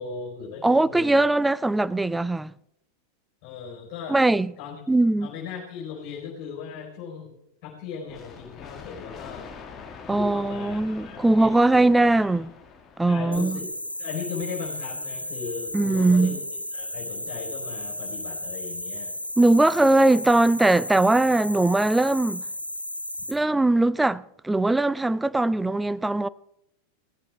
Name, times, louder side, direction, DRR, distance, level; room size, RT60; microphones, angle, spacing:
voice 1, 0.0-1.3 3.4-4.2 4.6-4.7 5.2-7.4 7.6-9.5 10.1-11.8 12.1-12.3 13.0-13.7 14.0-16.4 16.7-19.2, left 6 dB, 40° left, 4.6 m, -37 dB
voice 2, 0.6-2.5 4.1-4.5 4.9-5.3 10.1-12.5 13.0-13.6 15.7-16.4 19.4-22.4 23.3-26.3, right 2 dB, 5° right, 0.4 m, -20 dB
sound 1, 8.1-13.7, left 5 dB, 25° left, 1.7 m, -44 dB
sound 2, 13.3-23.3, left 1 dB, 85° left, 1.7 m, -34 dB
17.5 x 14.5 x 3.5 m
figure-of-eight pair, 90°, 0 cm